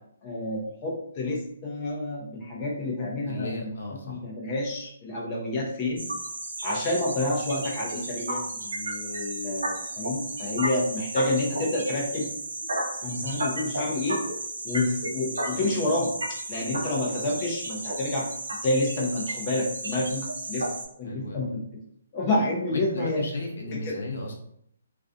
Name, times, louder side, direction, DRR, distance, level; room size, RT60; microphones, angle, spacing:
voice 1, 0.2-3.7 4.1-6.0 6.6-12.3 13.0-14.2 14.6-20.7 21.0-21.8 22.1-23.2 23.7-24.0, left 2 dB, 30° left, -3 dB, 0.6 m, -29 dB
voice 2, 3.3-4.2 15.5-15.7 21.0-21.4 22.7-24.4, left 2 dB, 70° left, 0 dB, 0.7 m, -34 dB
sound 1, 6.0-20.8, right 1 dB, 80° right, 1.0 m, -33 dB
2.5 x 2.3 x 2.4 m, 0.71 s
hypercardioid pair, 150°, 0 cm